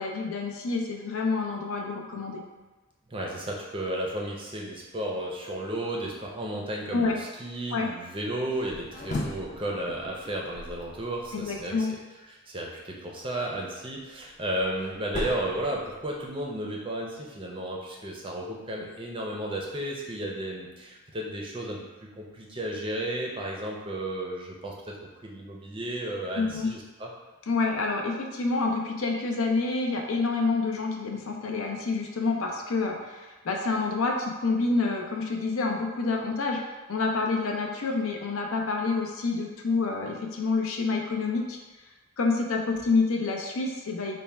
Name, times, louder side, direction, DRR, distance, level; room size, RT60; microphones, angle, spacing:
voice 1, 0.0-2.4 3.2-3.3 6.9-7.2 7.7-7.9 11.3-11.9 26.4-26.7 27.5-41.6 42.2-44.2, left 3 dB, 80° left, 1 dB, 0.6 m, -28 dB
voice 2, 3.1-11.7 12.5-21.8 22.2-25.0 25.2-27.1, right 1 dB, 25° right, -1 dB, 0.5 m, -33 dB
sound 1, 8.5-11.7 13.9-16.4, left 1 dB, 35° left, 0.4 m, -38 dB
3.4 x 2.1 x 4.2 m, 1.1 s
head